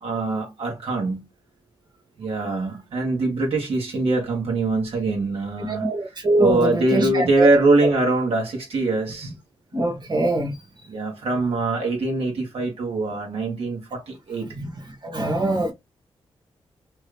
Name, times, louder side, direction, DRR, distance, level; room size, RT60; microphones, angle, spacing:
voice 1, 0.0-1.2 2.2-9.3 10.9-14.5, right 2 dB, 80° right, 1.3 m, -23 dB
voice 2, 5.7-7.5 9.2-9.3 9.7-10.6 14.5-14.7 15.0-15.7, right 2 dB, 50° right, 1.4 m, -23 dB
3.0 x 2.4 x 3.2 m
cardioid pair, 85°, 10 cm